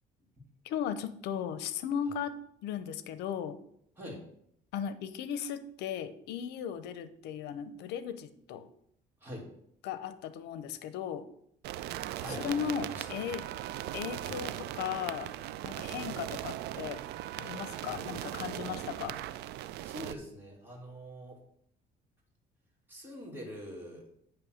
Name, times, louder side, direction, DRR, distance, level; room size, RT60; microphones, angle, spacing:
voice 1, 0.6-2.4 2.6-3.6 4.7-8.7 9.8-11.3 12.4-13.4 13.9-15.3 15.6-17.0 17.3-19.2, left 8 dB, 85° left, 13 dB, 0.6 m, -36 dB
sound 1, 11.6-20.1, right 13 dB, 80° right, 0.4 m, -39 dB
voice 2, 12.2-13.4 14.2-14.3 19.8-21.4 22.9-24.0, equal, 10° right, -2 dB, 2.4 m, -44 dB
8.6 x 3.1 x 6.3 m, 0.71 s
cardioid pair, 110°, 17 cm